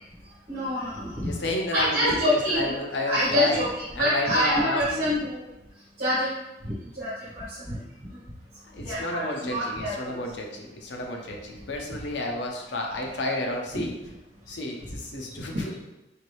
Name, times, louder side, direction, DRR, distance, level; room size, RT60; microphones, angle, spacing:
voice 1, 0.5-1.3 1.7-2.7 3.0-3.7 4.0-5.4 6.0-6.3 6.6-7.8 8.8-10.1 13.7-13.8 15.5-15.6, equal, 50° right, -9 dB, 1.1 m, -26 dB
voice 2, 1.2-3.7 4.0-5.1 8.7-13.9 14.5-15.7, left 1 dB, 80° left, 1 dB, 0.7 m, -31 dB
4.5 x 2.6 x 3.2 m, 0.96 s
head